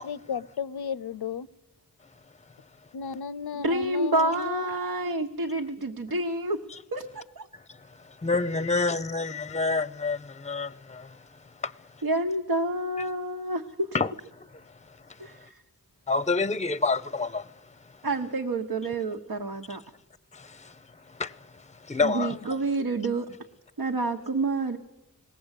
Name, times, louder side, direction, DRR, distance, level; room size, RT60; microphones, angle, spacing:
voice 1, 0.0-1.5 2.9-4.7, left 6 dB, 85° left, 0.7 m, -34 dB
voice 2, 3.6-6.6 6.9-7.5 12.0-13.9 15.2-15.5 18.0-19.8 22.0-23.3 23.8-24.8, right 2 dB, 75° right, 1.2 m, -28 dB
voice 3, 8.2-11.2 11.6-11.7 13.9-14.1 16.1-17.5 20.3-20.7 21.1-21.4 21.8-22.5, left 3 dB, 20° left, 0.6 m, -28 dB
20.0 x 18.0 x 8.3 m
wide cardioid pair, 60°, 37 cm